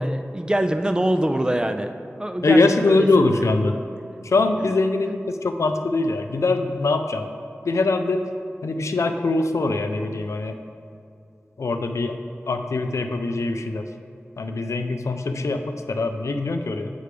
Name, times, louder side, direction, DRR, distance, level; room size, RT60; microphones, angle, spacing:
voice 1, 0.0-1.9 2.2-3.1 3.4-3.5 5.0-5.1, right 1 dB, 15° right, 7 dB, 0.3 m, -24 dB
voice 2, 2.4-3.7 4.2-7.3 7.7-8.2 8.6-10.6 11.6-12.2 12.5-13.9 14.4-16.9, left 3 dB, 90° left, 7 dB, 0.4 m, -22 dB
7.8 x 3.3 x 4.9 m, 2.4 s
wide cardioid pair, 75°, 5 cm